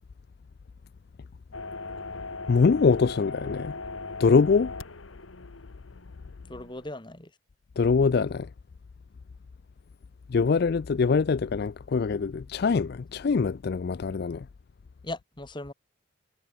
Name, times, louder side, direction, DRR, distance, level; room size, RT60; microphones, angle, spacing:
sound 1, 1.5-6.9, left 3 dB, 80° left, 2.5 m, -39 dB
voice 1, 2.5-3.8 4.2-4.7 7.8-8.5 10.3-14.5, left 5 dB, 50° left, 0.4 m, -23 dB
voice 2, 6.5-7.3 15.0-15.7, left 1 dB, 20° left, 2.1 m, -38 dB
head